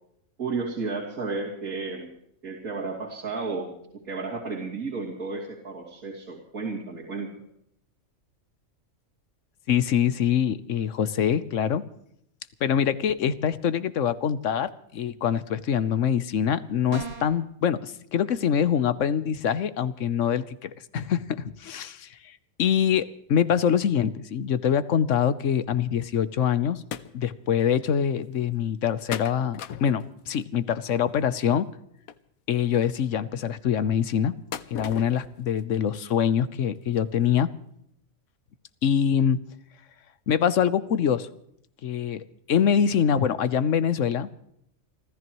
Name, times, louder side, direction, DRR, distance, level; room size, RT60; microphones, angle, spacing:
voice 1, 0.4-2.1 2.4-7.4, right 4 dB, 85° right, -4 dB, 3.3 m, -33 dB
voice 2, 9.7-11.8 12.6-22.3 22.6-26.8 27.1-31.7 32.5-34.3 34.7-37.5 38.8-39.4 40.3-41.3 41.8-44.3, left 8 dB, 65° left, 15 dB, 1.2 m, -24 dB
sound 1, 16.9-17.4, right 3 dB, 25° right, 1.6 m, -36 dB
sound 2, 26.9-27.1 27.6-27.7 27.9-28.0 29.1-30.4 32.1-32.2 34.5-35.2 35.6-35.7 36.2-36.3 36.9-37.0 37.2-37.3, left 9 dB, 85° left, 1.2 m, -36 dB
29.5 x 14.0 x 3.1 m, 0.73 s
omnidirectional pair, 1.4 m